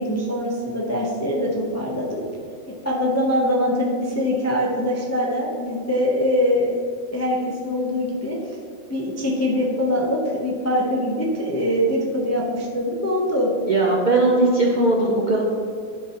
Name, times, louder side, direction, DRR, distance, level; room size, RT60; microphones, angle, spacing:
voice 1, 0.0-2.2 2.8-6.8 7.1-7.4 7.6-8.4 8.9-13.5, left 1 dB, 25° left, -3 dB, 0.3 m, -23 dB
voice 2, 13.6-15.4, right 2 dB, 55° right, -2 dB, 0.5 m, -19 dB
10.0 x 3.7 x 2.9 m, 2.3 s
omnidirectional pair, 1.5 m